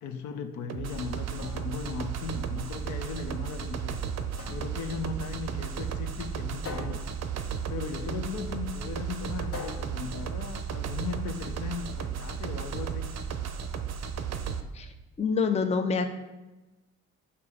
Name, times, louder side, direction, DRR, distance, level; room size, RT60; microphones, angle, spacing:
voice 1, 0.0-4.1 4.5-7.1 7.7-13.2, left 5 dB, 70° left, 7 dB, 0.6 m, -37 dB
sound 1, 0.7-14.6, right 7 dB, 60° right, 0.6 m, -34 dB
sound 2, 1.4-11.1, left 4 dB, 50° left, 1.3 m, -47 dB
voice 2, 15.2-16.1, left 5 dB, 20° left, 7 dB, 0.5 m, -26 dB
6.8 x 2.9 x 4.8 m, 1.1 s
cardioid pair, 90°, 30 cm